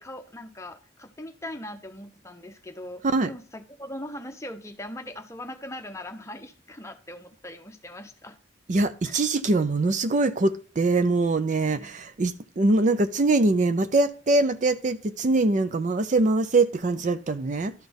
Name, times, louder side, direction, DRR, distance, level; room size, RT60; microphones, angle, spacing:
voice 1, 0.0-8.4 9.0-9.2 11.7-11.9, left 1 dB, 15° left, 0.8 m, -40 dB
voice 2, 8.7-17.7, right 2 dB, 40° right, 0.5 m, -23 dB
12.0 x 4.2 x 5.2 m
head